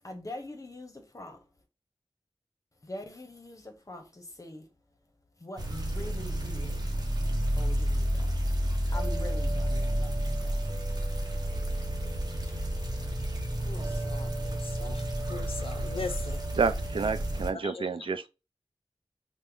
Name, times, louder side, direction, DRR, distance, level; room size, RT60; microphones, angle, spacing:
voice 1, 0.0-1.4 2.9-4.6 5.4-6.8 7.6-8.4 8.9-10.1, left 1 dB, 35° left, 0.9 m, -43 dB
sound 1, 5.6-17.5, equal, 45° right, 0.9 m, -30 dB
voice 2, 14.1-15.0 15.3-16.4 17.6-17.9, left 4 dB, 85° left, 0.5 m, -39 dB
voice 3, 16.5-18.3, right 5 dB, 70° right, 0.3 m, -29 dB
3.0 x 2.2 x 3.5 m
wide cardioid pair, 50°, 9 cm